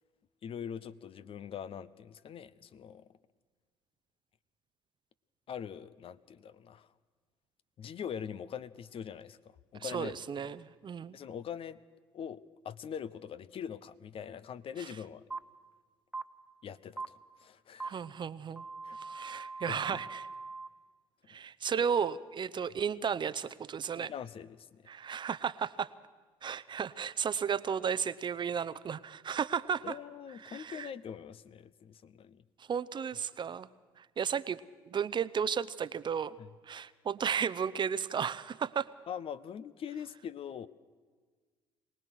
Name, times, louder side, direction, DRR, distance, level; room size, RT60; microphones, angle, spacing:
voice 1, 0.4-3.0 5.5-6.9 7.8-9.4 9.7-10.2 11.1-11.8 12.1-15.2 16.6-18.0 18.8-19.0 19.3-19.4 19.7-20.0 24.0-24.8 29.8-32.4 36.4-36.5 39.1-40.7, left 8 dB, 50° left, 15 dB, 0.8 m, -43 dB
voice 2, 9.8-11.2 17.8-18.6 19.0-20.3 21.3-24.1 24.9-25.9 26.4-30.0 30.4-30.9 32.6-33.7 34.0-36.4 36.7-38.9, right 7 dB, 40° right, 16 dB, 0.7 m, -34 dB
sound 1, 15.3-15.4 16.1-16.2 17.0-17.1 17.8-17.9 18.6-20.7, right 3 dB, 5° right, 1.1 m, -41 dB
23.5 x 18.5 x 6.2 m, 1.5 s
hypercardioid pair, 60°, 12 cm